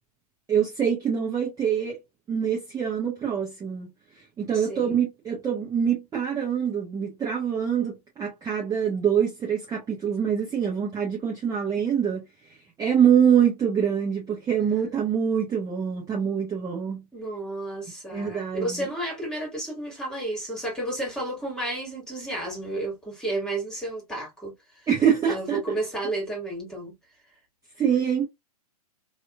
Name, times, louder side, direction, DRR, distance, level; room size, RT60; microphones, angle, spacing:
voice 1, 0.5-2.0 2.3-3.9 4.4-12.2 12.8-17.0 18.1-18.9 24.9-25.8 27.8-28.3, right 8 dB, 15° right, 1.2 m, -25 dB
voice 2, 4.5-5.0 17.1-24.5 25.2-26.9, right 2 dB, 5° left, 2.1 m, -32 dB
3.4 x 2.7 x 2.5 m
hypercardioid pair, 115°, 20 cm